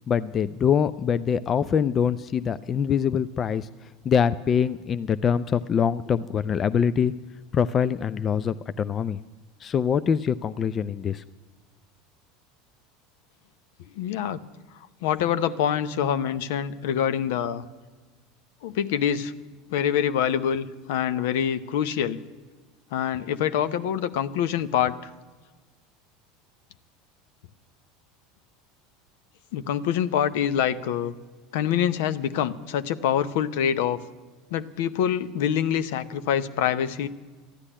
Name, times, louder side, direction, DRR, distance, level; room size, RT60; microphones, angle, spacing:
voice 1, 0.1-7.1 7.5-9.2 9.6-11.2, left 7 dB, 35° left, 15 dB, 0.4 m, -24 dB
voice 2, 14.0-14.4 15.0-17.6 18.6-19.3 19.7-22.2 22.9-25.1 29.5-31.1 31.5-34.0 34.5-37.1, left 9 dB, 70° left, 13 dB, 0.7 m, -25 dB
13.5 x 9.8 x 10.0 m, 1.4 s
hypercardioid pair, 85°, 0 cm